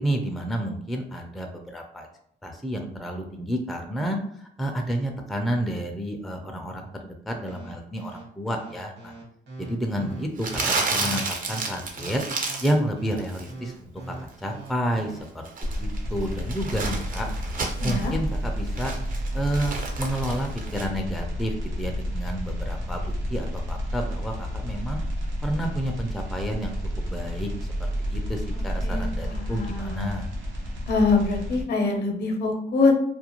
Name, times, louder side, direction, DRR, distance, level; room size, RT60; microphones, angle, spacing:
voice 1, 0.0-2.1 2.4-9.1 9.6-12.2 12.6-15.2 15.8-17.3 17.8-18.9 19.3-21.5 21.8-25.0 25.4-26.7 27.1-30.3, right 1 dB, ahead, 2 dB, 0.4 m, -30 dB
sound 1, 7.5-15.2, right 3 dB, 65° right, 1.2 m, -41 dB
Crumpling crinkling, 10.4-12.8 13.1-13.5 15.2-18.1 18.5-20.9, right 3 dB, 45° right, 0.6 m, -31 dB
sound 2, 15.6-31.6, equal, 80° right, 0.8 m, -31 dB
voice 2, 17.8-18.1 28.5-30.1 30.9-32.9, left 3 dB, 55° left, 3 dB, 0.6 m, -24 dB
2.4 x 2.1 x 2.9 m, 0.68 s
cardioid pair, 90°, 20 cm